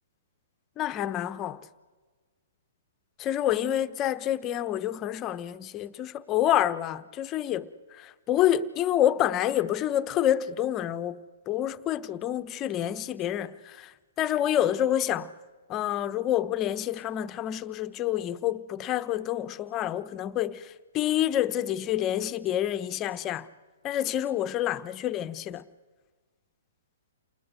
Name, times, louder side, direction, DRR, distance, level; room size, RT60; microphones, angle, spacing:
voice 1, 0.8-1.7 3.2-11.2 11.5-15.3 15.7-23.5 23.8-25.6, left 11 dB, 25° left, 1.0 m, -28 dB
28.5 x 20.0 x 7.8 m
hypercardioid pair, 130°, 0 cm